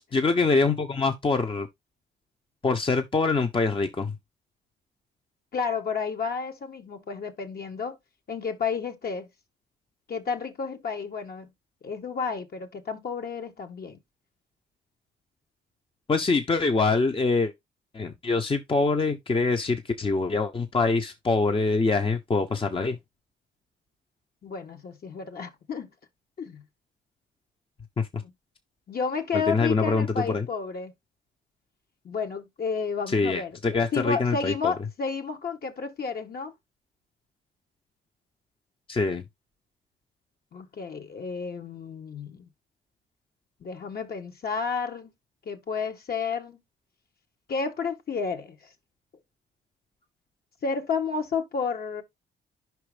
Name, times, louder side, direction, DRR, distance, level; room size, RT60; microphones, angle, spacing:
voice 1, 0.1-1.7 2.6-4.1 16.1-17.5 17.9-23.0 28.1-28.2 29.3-30.5 33.1-34.7 38.9-39.2, left 3 dB, 25° left, 1.1 m, -24 dB
voice 2, 5.5-8.0 8.3-9.3 10.1-11.5 11.8-14.0 24.4-25.9 26.4-26.6 28.2-28.3 28.9-30.9 32.0-36.5 40.5-42.5 43.6-45.1 45.5-46.6 47.5-48.7 50.6-52.0, left 5 dB, 50° left, 1.8 m, -31 dB
5.3 x 4.6 x 5.1 m
cardioid pair, 90°, 20 cm